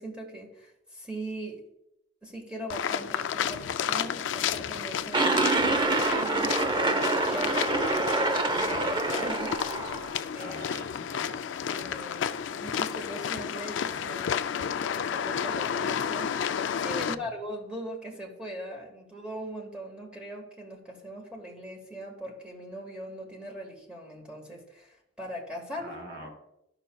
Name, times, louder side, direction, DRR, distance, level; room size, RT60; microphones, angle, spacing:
voice 1, 0.0-1.6 2.2-7.5 8.0-9.8 10.2-10.6 11.7-14.3 14.6-16.4 16.8-26.0, right 1 dB, 5° right, 0 dB, 1.4 m, -40 dB
sound 1, 2.7-17.1, left 8 dB, 70° left, 0.4 m, -32 dB
sound 2, 5.1-10.1, right 2 dB, 25° right, 0.7 m, -26 dB
voice 2, 10.1-11.4 16.9-17.3 25.8-26.3, right 1 dB, 60° right, 1 dB, 2.6 m, -45 dB
13.5 x 5.7 x 2.2 m, 0.82 s
head